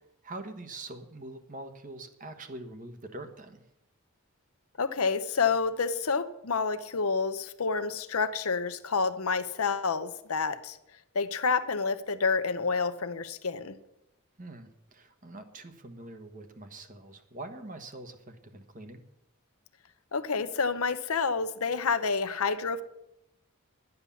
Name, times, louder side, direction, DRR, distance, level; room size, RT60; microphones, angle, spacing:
voice 1, 0.2-3.6 14.4-19.0, right 2 dB, 35° right, 7 dB, 1.3 m, -44 dB
voice 2, 4.8-10.8 11.1-13.7 20.1-22.8, left 5 dB, 75° left, 11 dB, 0.8 m, -29 dB
11.5 x 9.7 x 7.1 m, 0.86 s
head